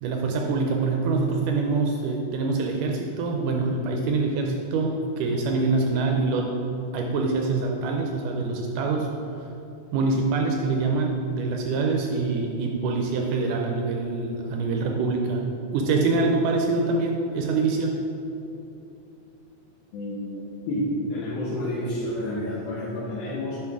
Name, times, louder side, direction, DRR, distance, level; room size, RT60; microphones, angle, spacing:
voice 1, 0.0-6.5 6.9-9.1 9.9-15.4 15.7-18.0, right 3 dB, 80° right, 1 dB, 1.9 m, -25 dB
voice 2, 19.9-20.4 20.7-23.6, left 1 dB, 85° left, -6 dB, 2.8 m, -29 dB
9.7 x 5.5 x 3.6 m, 2.8 s
omnidirectional pair, 4.1 m